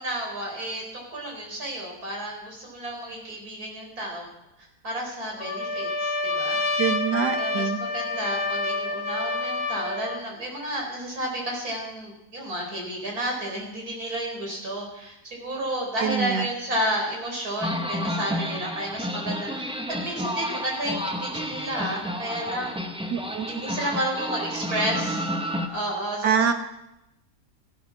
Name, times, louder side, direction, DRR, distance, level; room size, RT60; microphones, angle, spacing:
voice 1, 0.0-4.3 4.8-6.8 7.3-19.8 20.0-22.8 23.5-25.3 25.7-26.3, right 1 dB, 65° right, -1 dB, 4.8 m, -31 dB
Trumpet, 5.4-10.2, left 2 dB, 45° left, 1.3 m, -28 dB
voice 2, 6.8-7.8 16.0-16.5 23.1-23.5 26.2-26.5, right 7 dB, 85° right, 7 dB, 1.9 m, -24 dB
sound 1, 17.6-25.7, equal, 5° right, 0.8 m, -31 dB
14.5 x 14.5 x 6.1 m, 0.87 s
omnidirectional pair, 1.7 m